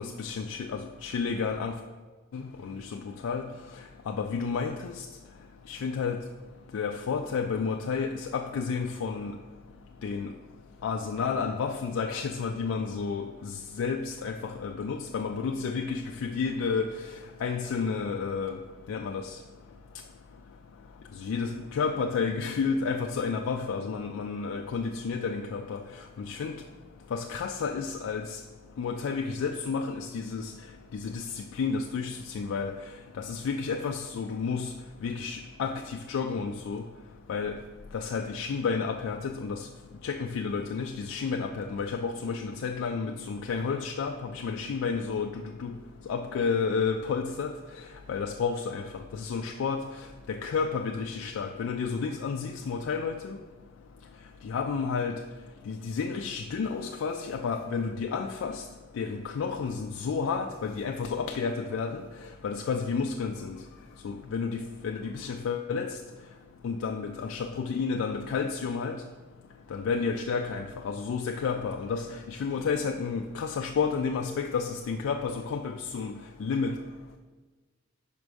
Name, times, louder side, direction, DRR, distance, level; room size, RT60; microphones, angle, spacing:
voice 1, 0.0-1.8 2.3-3.4 4.1-5.1 5.7-6.2 6.7-9.4 10.0-10.3 10.8-16.9 17.4-18.6 18.9-19.3 21.2-25.8 26.2-26.6 27.1-28.4 28.8-30.5 30.9-32.7 33.2-34.7 35.0-36.9 37.3-37.6 37.9-39.7 40.0-45.8 46.1-47.5 48.1-49.8 50.3-53.4 54.4-55.2 55.7-58.6 59.0-62.0 62.4-63.6 64.0-66.0 66.6-69.0 69.7-76.8, left 5 dB, 85° left, 4 dB, 0.3 m, -31 dB
5.3 x 4.8 x 5.1 m, 1.4 s
head